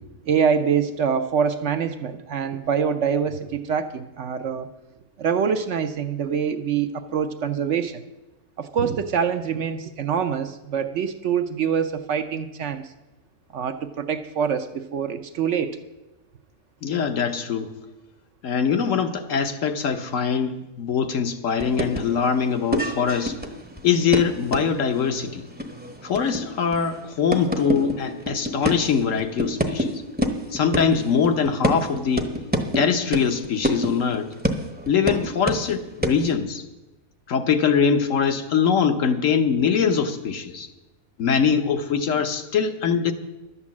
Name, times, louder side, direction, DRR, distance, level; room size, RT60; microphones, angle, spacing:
voice 1, 0.2-4.7 5.2-8.0 8.6-12.9 13.5-15.8, right 7 dB, 65° right, 9 dB, 0.9 m, -25 dB
voice 2, 16.8-17.7 18.4-23.4 23.8-25.4 26.0-30.0 30.5-32.3 32.7-34.3 34.9-36.6 37.3-40.7 41.2-43.1, left 6 dB, 65° left, 7 dB, 1.2 m, -22 dB
sound 1, 21.6-29.9 30.2-35.7 36.0-36.3, equal, 10° right, 0.7 m, -27 dB
11.5 x 8.5 x 7.2 m, 1.1 s
omnidirectional pair, 1.5 m